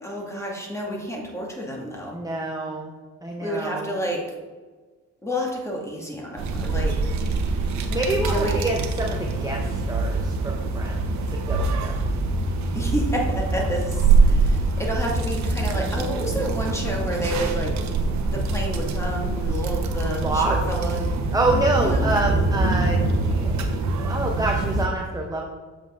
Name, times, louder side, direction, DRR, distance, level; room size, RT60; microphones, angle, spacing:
voice 1, 0.0-2.2 3.4-4.3 5.2-7.1 8.3-8.6 12.7-17.8 18.3-21.0 21.8-22.1, equal, 10° left, -1 dB, 2.0 m, -30 dB
voice 2, 2.1-2.9 3.2-3.9 7.9-12.0 20.1-20.6 21.3-25.4, right 2 dB, 10° right, 0 dB, 0.9 m, -27 dB
sound 1, 6.4-24.9, right 3 dB, 65° right, 1.0 m, -24 dB
7.6 x 6.2 x 3.7 m, 1.4 s
cardioid pair, 90°, 30 cm